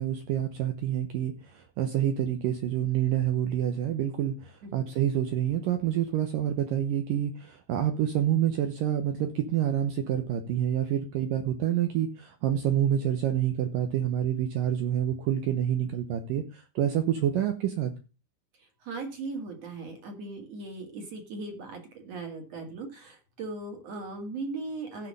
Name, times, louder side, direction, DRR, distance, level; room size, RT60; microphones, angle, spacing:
voice 1, 0.0-17.9, right 10 dB, 85° right, 7 dB, 1.9 m, -28 dB
voice 2, 18.8-25.1, right 3 dB, 45° right, 4 dB, 2.6 m, -38 dB
15.5 x 5.6 x 5.4 m, 0.32 s
omnidirectional pair, 5.4 m